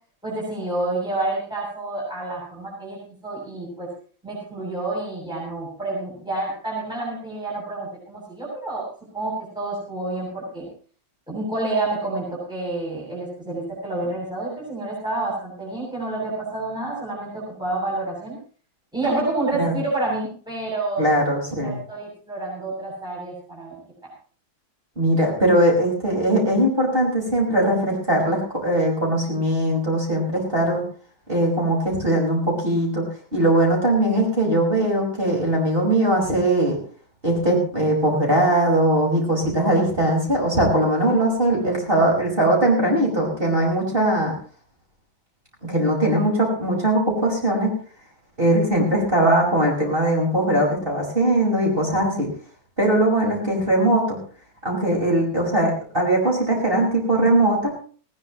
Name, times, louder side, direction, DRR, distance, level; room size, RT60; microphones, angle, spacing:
voice 1, 0.2-3.9 4.2-8.8 9.1-10.7 11.3-18.4 18.9-21.1 21.6-23.7 24.0-24.1, right 2 dB, ahead, -5 dB, 7.8 m, -28 dB
voice 2, 21.0-21.8 25.0-30.8 31.3-33.0 33.3-36.8 37.2-44.3 45.6-47.7 48.4-52.3 52.8-54.2 54.6-57.7, right 1 dB, 25° right, -1 dB, 5.5 m, -20 dB
20.0 x 18.0 x 3.1 m, 0.42 s
omnidirectional pair, 2.1 m